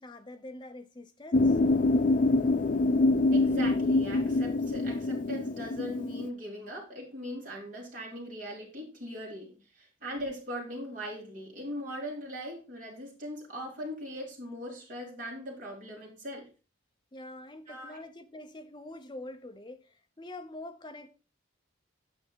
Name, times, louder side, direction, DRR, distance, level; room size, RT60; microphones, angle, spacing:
voice 1, 0.0-1.6 17.1-21.1, left 1 dB, 25° left, 0.7 m, -45 dB
sound 1, 1.3-6.3, left 2 dB, 40° left, 0.3 m, -25 dB
voice 2, 3.3-16.5 17.7-18.0, equal, 40° right, 3.3 m, -40 dB
8.1 x 5.8 x 4.5 m
head